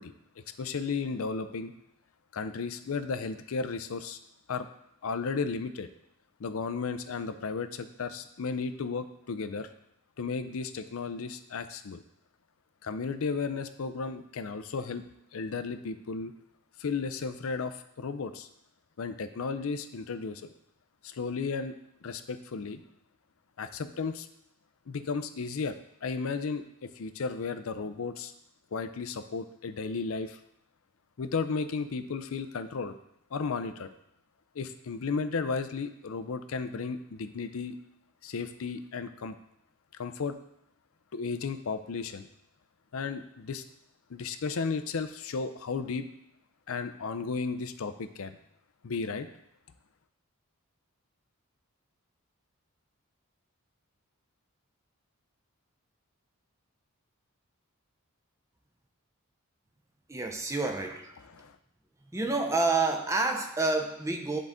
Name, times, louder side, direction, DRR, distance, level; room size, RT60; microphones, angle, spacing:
voice 1, 0.0-1.7 2.3-4.2 4.5-4.7 5.0-5.9 6.4-9.7 10.2-12.0 12.8-15.0 15.3-16.3 16.8-18.5 19.0-20.5 21.0-21.7 22.0-22.8 23.6-24.3 24.9-25.7 26.0-28.3 28.7-30.4 31.2-33.0 33.3-33.9 34.5-37.7 38.2-39.4 39.9-40.3 41.1-42.3 42.9-43.6 44.1-46.1 46.7-48.4 48.8-49.3 61.3-61.6, left 4 dB, 65° left, 11 dB, 0.5 m, -34 dB
voice 2, 60.1-61.1 62.1-64.4, right 3 dB, 15° right, 3 dB, 0.6 m, -28 dB
10.5 x 3.9 x 3.6 m, 0.78 s
head